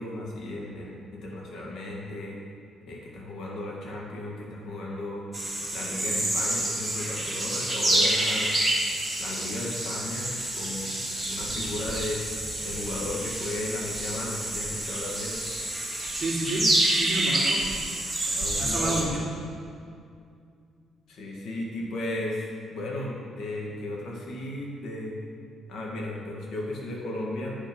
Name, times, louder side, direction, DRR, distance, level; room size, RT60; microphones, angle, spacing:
voice 1, 0.0-2.4 2.9-5.3 5.7-8.5 9.2-11.0 11.3-12.2 12.6-15.4 18.3-19.3 21.1-25.2 25.7-27.5, left 1 dB, 70° left, -3 dB, 1.9 m, -35 dB
sound 1, 5.3-19.0, right 1 dB, 5° left, 2.0 m, -28 dB
voice 2, 16.2-17.7 18.6-19.3, right 2 dB, 25° right, -5 dB, 2.2 m, -30 dB
9.6 x 5.5 x 5.5 m, 2.3 s
cardioid pair, 120°, 0 cm